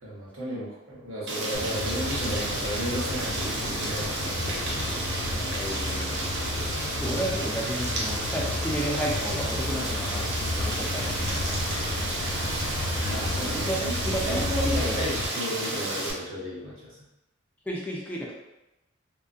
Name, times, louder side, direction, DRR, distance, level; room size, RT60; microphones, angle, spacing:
voice 1, 0.0-5.1 13.0-13.9 14.3-17.0, equal, 80° right, -7 dB, 1.1 m, -34 dB
Rain, 1.3-16.1, right 2 dB, 60° right, 0.5 m, -32 dB
sound 1, 1.5-15.3, left 2 dB, 75° left, 0.4 m, -32 dB
voice 2, 5.3-6.2 6.5-11.6 12.0-12.1 13.4-13.8 14.0-15.0 17.7-18.3, right 1 dB, 10° left, -3 dB, 0.3 m, -33 dB
2.5 x 2.5 x 2.3 m, 0.96 s
head